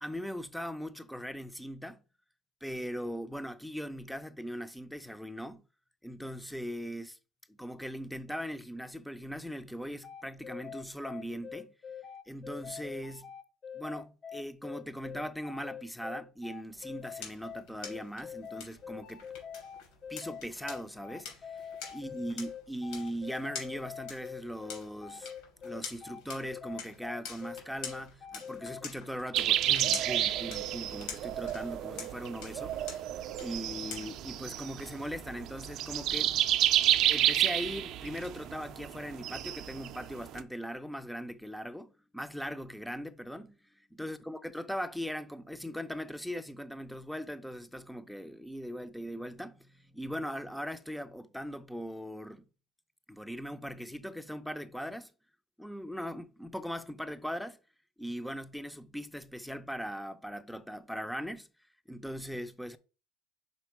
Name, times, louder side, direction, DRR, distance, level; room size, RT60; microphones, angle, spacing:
voice 1, 0.0-2.0 2.6-5.6 6.0-7.2 7.5-11.7 12.3-13.3 13.7-19.3 20.1-21.6 21.9-25.3 25.6-32.9 33.4-36.4 37.1-43.6 43.9-52.5 53.1-55.1 55.6-57.6 58.0-61.5 61.9-62.8, equal, ahead, 0.5 m, -40 dB
sound 1, 10.0-28.8, left 7 dB, 40° left, 0.9 m, -44 dB
sound 2, 16.7-34.4, left 6 dB, 75° left, 3.4 m, -47 dB
sound 3, 29.3-40.4, right 12 dB, 55° right, 0.5 m, -30 dB
5.3 x 4.2 x 4.7 m
supercardioid pair, 115°, 0 cm